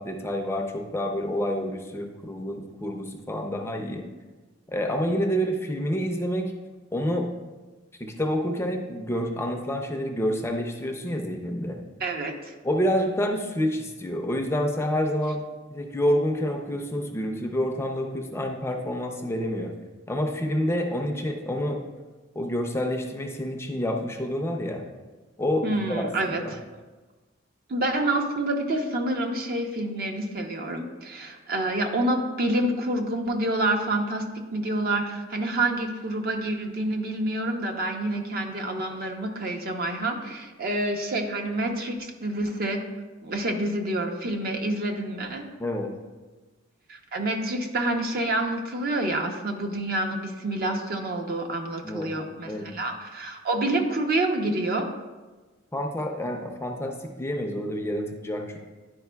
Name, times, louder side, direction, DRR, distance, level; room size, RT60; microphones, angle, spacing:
voice 1, 0.0-4.1 4.7-6.5 6.9-7.3 8.0-11.8 12.6-15.4 15.7-19.7 20.1-21.8 22.4-24.8 25.4-26.6 45.6-45.9 51.8-52.1 52.4-52.8 55.7-58.6, equal, 15° left, 3 dB, 0.5 m, -28 dB
voice 2, 12.0-12.5 25.6-26.6 27.7-42.8 43.2-45.4 46.9-54.9, right 1 dB, 50° right, 3 dB, 0.7 m, -28 dB
10.5 x 5.0 x 2.2 m, 1.3 s
head